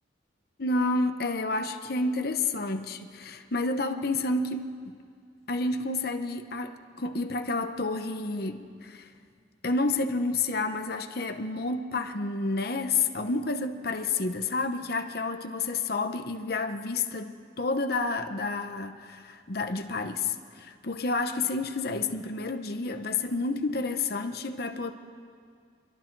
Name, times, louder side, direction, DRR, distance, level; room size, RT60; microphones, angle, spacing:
voice 1, 0.6-5.0 5.5-9.1 9.6-24.9, left 3 dB, 55° left, 7 dB, 1.0 m, -30 dB
25.5 x 23.0 x 4.7 m, 2.2 s
head